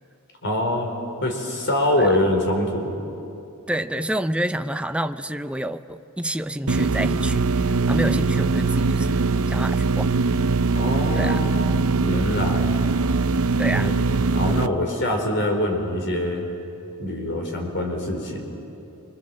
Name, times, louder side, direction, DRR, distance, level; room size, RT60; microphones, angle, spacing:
voice 1, 0.4-0.9 1.2-2.9 10.7-12.7 13.7-14.0 14.3-16.5 17.0-18.4, left 1 dB, 55° left, 2 dB, 4.4 m, -24 dB
voice 2, 3.7-10.1 11.1-11.4 13.6-14.0, right 1 dB, 5° right, 8 dB, 0.6 m, -28 dB
sound 1, 6.7-14.7, right 4 dB, 65° right, 0.7 m, -21 dB
28.5 x 25.0 x 7.6 m, 2.8 s
head